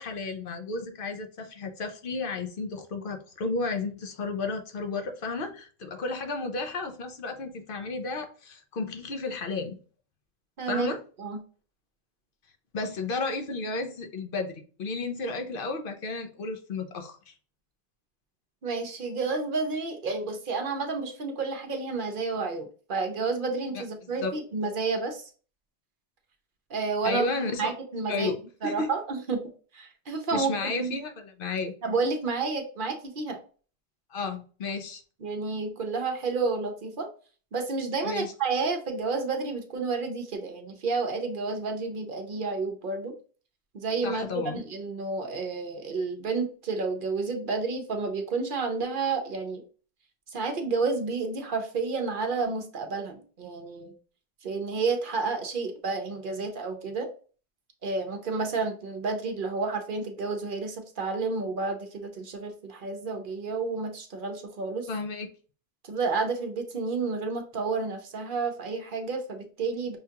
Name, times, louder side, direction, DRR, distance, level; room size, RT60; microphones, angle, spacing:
voice 1, 0.0-9.8 10.7-11.0 12.7-17.3 23.7-23.8 24.2-24.3 27.0-27.7 28.1-28.4 28.6-28.9 30.3-31.7 34.1-35.0 38.0-38.3 44.0-44.6 64.9-65.3, left 3 dB, 60° left, 5 dB, 0.8 m, -32 dB
voice 2, 10.6-10.9 11.2-11.4 18.6-25.3 26.7-27.3 27.6-28.3 28.6-29.4 29.7-31.0 31.8-33.4 35.2-37.1 37.5-43.1 43.7-49.6 50.3-53.9 54.4-57.1 57.8-64.9 65.8-70.0, right 4 dB, 60° right, 4 dB, 0.8 m, -30 dB
5.6 x 2.3 x 2.8 m, 0.39 s
omnidirectional pair, 1.1 m